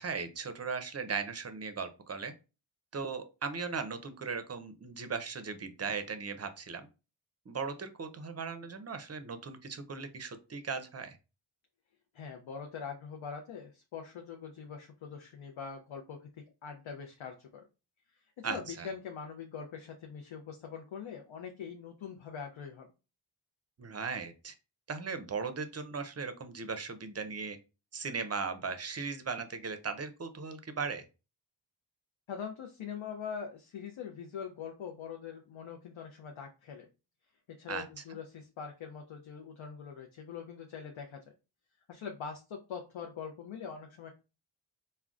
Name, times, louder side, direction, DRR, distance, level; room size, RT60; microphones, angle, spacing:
voice 1, 0.0-2.3 2.9-6.9 7.5-11.2 18.4-18.9 23.8-24.5 24.9-27.6 27.9-31.0 37.7-37.8, right 5 dB, 35° right, 9 dB, 0.5 m, -38 dB
voice 2, 12.1-16.3 16.6-17.7 18.1-22.9 32.3-36.9 37.5-41.2 41.9-44.1, left 6 dB, 75° left, 3 dB, 0.6 m, -43 dB
3.6 x 2.2 x 2.3 m, 0.30 s
wide cardioid pair, 60°, 48 cm